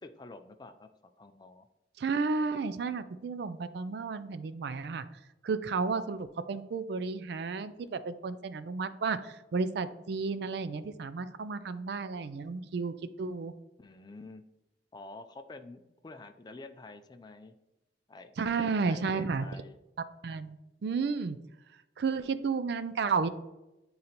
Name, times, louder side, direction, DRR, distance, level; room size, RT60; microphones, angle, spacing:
voice 1, 0.0-0.9 1.2-1.7 8.3-8.4 13.8-14.4 14.9-17.5 18.1-18.3 18.6-19.8, left 3 dB, 25° left, 8 dB, 0.3 m, -48 dB
voice 2, 2.0-5.0 5.4-13.5 18.4-19.5 20.2-20.6 20.8-21.4 22.0-23.3, right 4 dB, 60° right, 12 dB, 0.4 m, -32 dB
9.3 x 3.9 x 2.9 m, 0.95 s
head